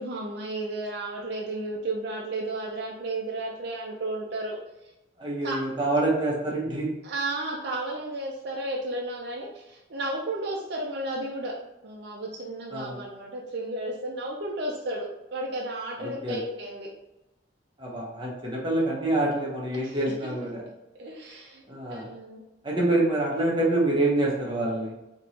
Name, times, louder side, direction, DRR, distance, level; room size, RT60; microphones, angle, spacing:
voice 1, 0.0-4.9 5.4-5.6 7.0-11.5 11.8-16.9 19.7-20.1 21.0-21.6 21.9-22.4, right 2 dB, 55° right, -2 dB, 0.5 m, -33 dB
voice 2, 5.2-6.9 12.7-13.0 16.0-16.4 17.8-20.6 21.7-22.1 22.6-24.9, right 2 dB, 25° right, -4 dB, 0.9 m, -26 dB
3.5 x 2.9 x 2.8 m, 0.96 s
head